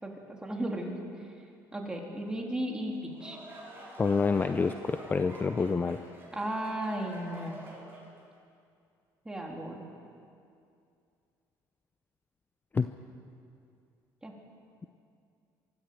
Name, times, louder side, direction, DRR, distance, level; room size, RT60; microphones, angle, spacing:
voice 1, 0.0-1.4 1.7-3.4 6.3-7.5 9.2-9.8 14.2-14.3, right 1 dB, 10° right, 0 dB, 3.3 m, -35 dB
sound 1, 2.9-8.2, right 1 dB, 25° right, 6.5 m, -48 dB
voice 2, 4.0-6.0 12.7-12.9, left 4 dB, 25° left, 9 dB, 0.6 m, -27 dB
25.0 x 13.5 x 7.9 m, 2.4 s
cardioid pair, 110°, 8 cm